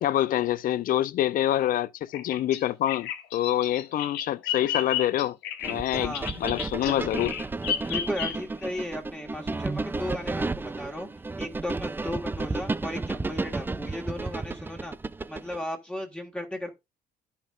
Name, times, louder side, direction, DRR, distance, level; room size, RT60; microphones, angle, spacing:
voice 1, 0.0-5.4 5.6-7.4, left 12 dB, 55° left, 0.5 m, -26 dB
Bird vocalization bird call bird song, 2.1-8.7, left 9 dB, 85° left, 1.2 m, -33 dB
sound 1, 5.6-15.6, right 3 dB, 10° right, 0.4 m, -33 dB
voice 2, 5.9-6.3 7.9-11.1 11.4-14.9 15.3-16.7, left 1 dB, 5° left, 1.6 m, -35 dB
11.5 x 5.5 x 2.4 m
cardioid pair, 110°, 17 cm